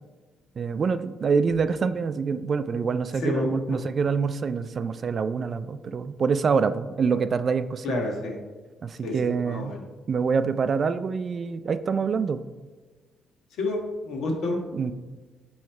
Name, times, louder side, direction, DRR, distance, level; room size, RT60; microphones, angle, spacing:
voice 1, 0.6-8.0 8.8-9.7 10.1-12.4 14.7-14.9, right 5 dB, 45° right, 12 dB, 0.4 m, -26 dB
voice 2, 7.8-8.4 9.0-9.8 13.5-14.6, left 2 dB, 75° left, 1 dB, 1.4 m, -29 dB
9.5 x 3.2 x 4.5 m, 1.3 s
cardioid pair, 90°, 0 cm